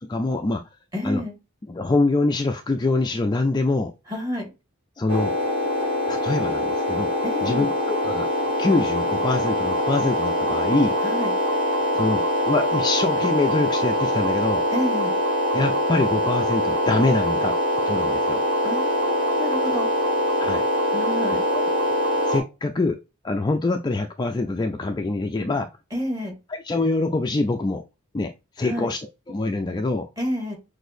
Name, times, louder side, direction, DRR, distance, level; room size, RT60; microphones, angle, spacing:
voice 1, 0.1-0.6 1.0-1.2 1.7-3.9 5.0-5.3 6.1-7.1 7.4-8.3 8.6-10.9 11.9-14.6 15.5-17.5 17.9-18.4 20.4-20.6 21.5-21.6 22.3-23.0 23.2-25.7 26.6-27.8 28.1-29.0 29.3-30.1, left 2 dB, 20° left, 5 dB, 0.4 m, -24 dB
voice 2, 0.9-1.3 4.1-4.5 7.2-7.7 11.0-11.3 14.7-15.1 18.6-19.9 20.9-21.4 25.9-26.3 28.6-28.9 30.2-30.5, left 1 dB, 15° right, -1 dB, 2.3 m, -29 dB
sound 1, 5.1-22.4, equal, 70° right, 1.8 m, -23 dB
6.2 x 2.6 x 2.6 m, 0.27 s
head